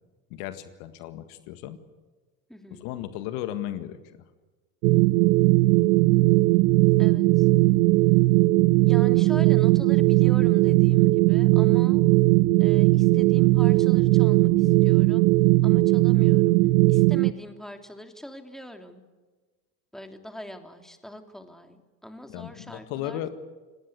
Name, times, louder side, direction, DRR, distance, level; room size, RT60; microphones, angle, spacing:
voice 1, 0.3-1.8 2.7-4.0 22.3-23.3, left 12 dB, 70° left, 10 dB, 1.9 m, -35 dB
voice 2, 2.5-2.9 7.0-7.5 8.9-12.1 12.6-15.3 15.6-16.6 16.9-19.0 19.9-23.2, equal, ahead, 5 dB, 3.1 m, -42 dB
sound 1, 4.8-17.3, right 20 dB, 85° right, 0.7 m, -19 dB
29.5 x 18.0 x 8.2 m, 1.3 s
hypercardioid pair, 80°, 47 cm